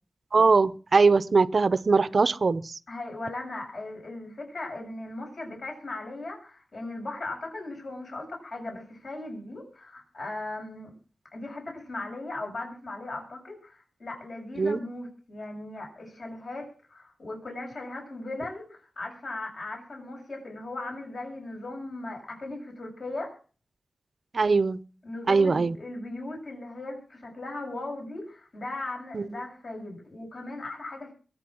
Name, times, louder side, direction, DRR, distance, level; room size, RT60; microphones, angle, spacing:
voice 1, 0.3-2.8 14.6-14.8 24.3-24.8 25.3-25.7 29.1-29.2, right 4 dB, 50° right, 17 dB, 0.7 m, -21 dB
voice 2, 2.9-10.9 11.3-23.4 25.0-31.1, left 2 dB, 60° left, 0 dB, 7.2 m, -38 dB
22.5 x 8.8 x 6.2 m, 0.40 s
wide cardioid pair, 95°, 0 cm